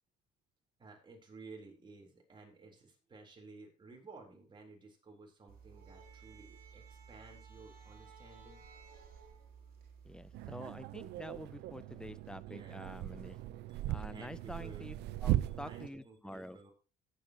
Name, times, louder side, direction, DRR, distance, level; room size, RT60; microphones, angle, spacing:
voice 1, 0.8-8.6 12.4-13.0 13.7-14.9 15.6-16.7, right 3 dB, 30° right, 1 dB, 3.9 m, -55 dB
sound 1, 5.5-10.5, right 6 dB, 60° right, 3.2 m, -55 dB
voice 2, 10.0-13.4 13.9-14.9 15.2-16.6, left 1 dB, 5° left, 16 dB, 0.6 m, -47 dB
sound 2, 10.3-15.9, right 14 dB, 80° right, 0.8 m, -38 dB
17.5 x 7.7 x 3.0 m, 0.33 s
cardioid pair, 110°, 17 cm